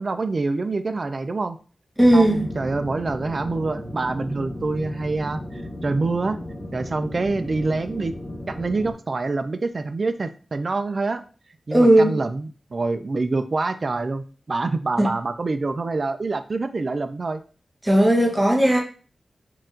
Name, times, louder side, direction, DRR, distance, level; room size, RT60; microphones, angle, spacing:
voice 1, 0.0-1.6 2.1-6.4 6.7-8.1 8.5-11.2 11.7-17.4, right 3 dB, 50° right, 0.4 m, -26 dB
sound 1, 2.0-8.9, left 1 dB, 30° left, 1.0 m, -35 dB
voice 2, 2.0-2.4 11.7-12.1 15.0-15.1 17.8-18.8, right 1 dB, 10° right, 1.0 m, -16 dB
4.5 x 2.5 x 3.8 m
wide cardioid pair, 115°, 0 cm